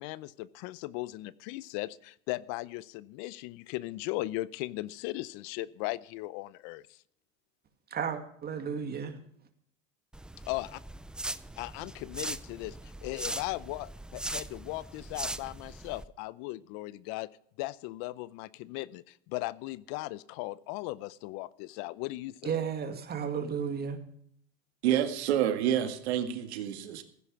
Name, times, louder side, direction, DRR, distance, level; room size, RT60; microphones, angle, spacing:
voice 1, 0.0-6.8 10.5-10.7 11.6-17.3 17.6-22.5, left 19 dB, 60° left, 0.7 m, -37 dB
voice 2, 7.9-9.2 22.4-24.0, right 7 dB, 30° right, 2.2 m, -33 dB
sound 1, 10.1-16.0, right 1 dB, 5° right, 0.4 m, -40 dB
voice 3, 24.8-27.0, right 10 dB, 80° right, 1.9 m, -28 dB
15.5 x 10.0 x 4.7 m
supercardioid pair, 115°, 32 cm